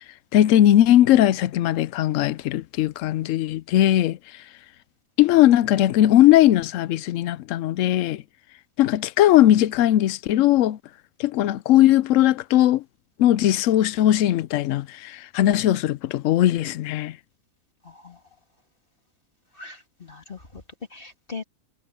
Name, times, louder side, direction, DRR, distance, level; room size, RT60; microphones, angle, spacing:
voice 1, 0.3-4.2 5.2-8.2 8.8-10.8 11.2-12.8 13.2-17.2, left 13 dB, 65° left, 0.8 m, -19 dB
voice 2, 17.8-18.2 19.5-20.6 20.9-21.4, left 4 dB, 35° left, 2.8 m, -40 dB
omnidirectional pair, 1.6 m